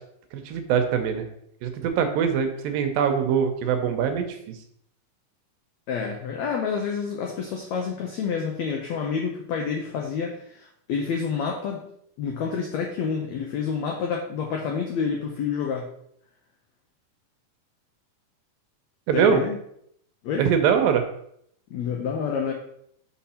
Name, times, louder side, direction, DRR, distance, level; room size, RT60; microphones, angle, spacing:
voice 1, 0.5-1.3 1.6-4.6 19.1-19.4 20.4-21.0, right 7 dB, 80° right, 7 dB, 2.4 m, -23 dB
voice 2, 5.9-11.8 12.2-15.9 19.1-19.6 20.2-20.5 21.7-22.5, left 6 dB, 85° left, 1 dB, 1.5 m, -28 dB
6.0 x 5.8 x 4.2 m, 0.71 s
omnidirectional pair, 4.2 m